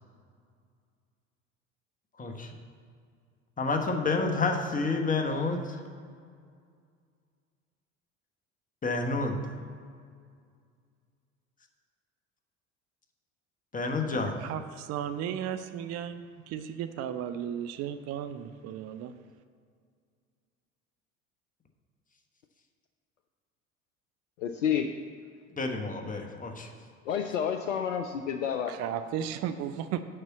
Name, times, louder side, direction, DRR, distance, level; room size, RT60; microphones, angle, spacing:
voice 1, 2.2-2.5 3.6-5.8 8.8-9.4 13.7-14.4 25.6-26.7, left 3 dB, 20° left, 3 dB, 1.3 m, -29 dB
voice 2, 14.0-19.1 28.7-30.0, right 9 dB, 40° right, 10 dB, 0.5 m, -35 dB
voice 3, 24.4-24.9 27.1-28.7, left 8 dB, 75° left, 6 dB, 0.6 m, -29 dB
6.7 x 5.8 x 7.2 m, 2.1 s
figure-of-eight pair, 65°, 38 cm